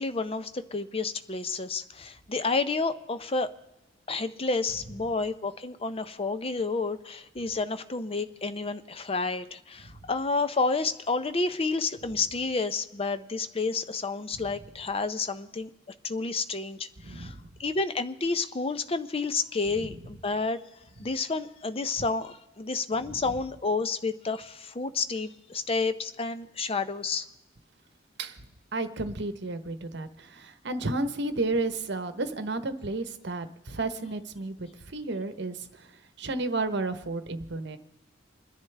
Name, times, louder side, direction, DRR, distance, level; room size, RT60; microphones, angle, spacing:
voice 1, 0.0-3.5 4.1-15.7 16.0-20.6 21.0-27.3, left 3 dB, 30° left, 11 dB, 0.6 m, -30 dB
voice 2, 17.0-17.5 19.8-19.9 28.2-28.4 28.7-35.9 36.2-37.8, right 2 dB, 65° right, 10 dB, 1.0 m, -32 dB
28.5 x 10.5 x 3.4 m, 0.98 s
head